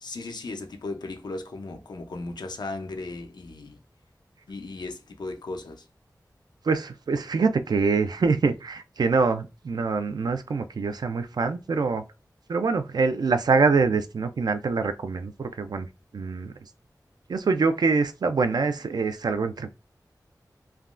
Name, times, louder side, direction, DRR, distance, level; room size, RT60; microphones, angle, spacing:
voice 1, 0.0-3.8 4.5-5.9, left 2 dB, 85° left, 0.5 m, -36 dB
voice 2, 6.6-12.0 12.5-15.9 16.1-16.7 17.3-19.7, right 4 dB, 75° right, 0.4 m, -25 dB
3.3 x 2.2 x 2.4 m
wide cardioid pair, 65°, 7 cm